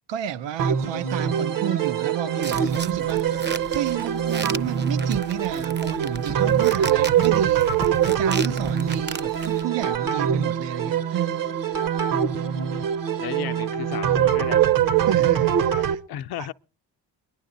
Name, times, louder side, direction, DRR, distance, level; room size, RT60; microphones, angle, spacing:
voice 1, 0.1-11.5 15.0-16.0, right 12 dB, 90° right, 0.8 m, -31 dB
sound 1, 0.6-16.0, right 9 dB, 50° right, 0.9 m, -23 dB
sound 2, 2.4-9.6, right 4 dB, 25° right, 0.6 m, -36 dB
voice 2, 13.2-14.6 16.1-16.5, left 12 dB, 60° left, 0.6 m, -34 dB
23.0 x 11.0 x 3.9 m
cardioid pair, 125°, 43 cm